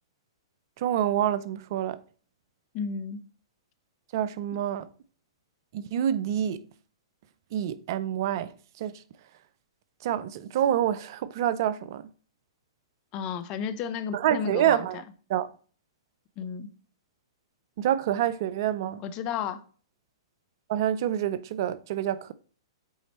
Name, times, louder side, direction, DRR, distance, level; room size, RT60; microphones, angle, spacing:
voice 1, 0.8-2.0 4.1-4.9 5.7-6.6 7.5-8.5 8.8-8.9 10.0-12.0 14.1-15.0 15.3-15.5 17.8-19.0 20.7-22.3, right 11 dB, 55° right, 0.5 m, -27 dB
voice 2, 2.7-3.2 13.1-15.0 16.4-16.7 19.0-19.6, left 7 dB, 35° left, 0.8 m, -33 dB
8.1 x 4.3 x 3.0 m
hypercardioid pair, 120°, 3 cm